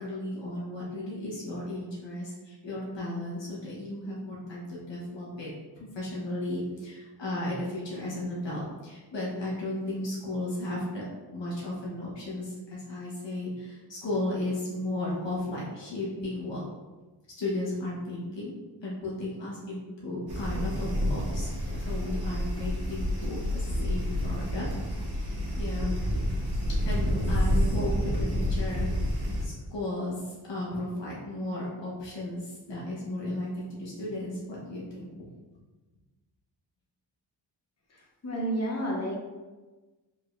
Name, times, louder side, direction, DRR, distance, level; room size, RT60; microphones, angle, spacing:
voice 1, 0.0-5.5 5.8-11.1 11.3-16.6 17.4-18.5 18.8-24.7 25.1-26.0 26.7-28.9 29.4-35.2, left 1 dB, 75° left, -6 dB, 1.3 m, -35 dB
sound 1, 20.3-29.4, equal, 60° right, 1.4 m, -29 dB
voice 2, 38.2-39.2, right 1 dB, 35° left, -3 dB, 1.1 m, -30 dB
4.9 x 3.9 x 2.6 m, 1.2 s
wide cardioid pair, 120°, 44 cm